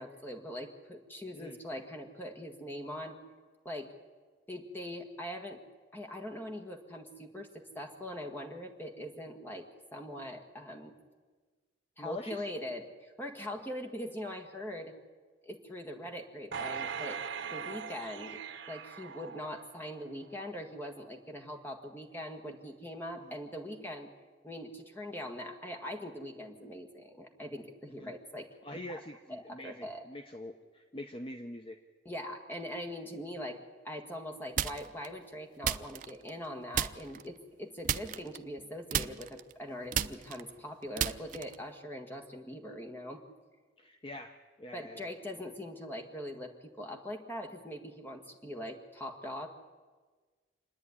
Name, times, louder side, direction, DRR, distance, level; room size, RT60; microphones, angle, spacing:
voice 1, 0.0-3.2 3.7-3.9 4.5-5.6 5.9-9.7 9.9-10.9 12.0-14.9 15.4-17.2 17.5-18.4 18.7-24.1 24.4-29.0 29.3-30.0 32.1-33.6 33.8-43.2 44.7-49.5, left 1 dB, 10° left, 1 dB, 1.7 m, -42 dB
voice 2, 12.0-12.4 23.2-23.4 27.9-28.1 28.6-31.8 43.8-45.1, left 1 dB, 30° left, 6 dB, 0.7 m, -44 dB
sound 1, 16.5-20.0 20.4-20.5, right 6 dB, 75° right, 1.0 m, -40 dB
sound 2, 34.6-35.1 35.6-36.5 36.7-37.3 37.8-38.6 38.9-41.7, right 9 dB, 45° right, 0.5 m, -33 dB
27.0 x 10.0 x 9.8 m, 1.4 s
head